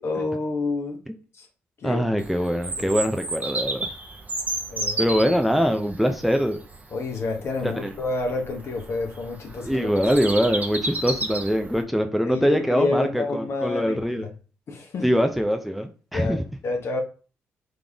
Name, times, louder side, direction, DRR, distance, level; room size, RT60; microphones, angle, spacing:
voice 1, 0.0-1.0 1.4-1.5 1.8-2.0 2.8-2.9 4.7-5.1 6.9-9.9 12.2-14.0 14.7-15.0 16.1-17.0, left 3 dB, 55° left, 3 dB, 1.3 m, -28 dB
voice 2, 1.8-3.9 5.0-6.6 7.6-7.9 9.6-14.3 15.0-16.4, equal, ahead, 5 dB, 0.7 m, -23 dB
Bird vocalization bird call bird song, 2.2-11.8, right 2 dB, 30° right, 1.1 m, -33 dB
3.9 x 3.6 x 3.5 m, 0.36 s
hypercardioid pair, 50°, 5 cm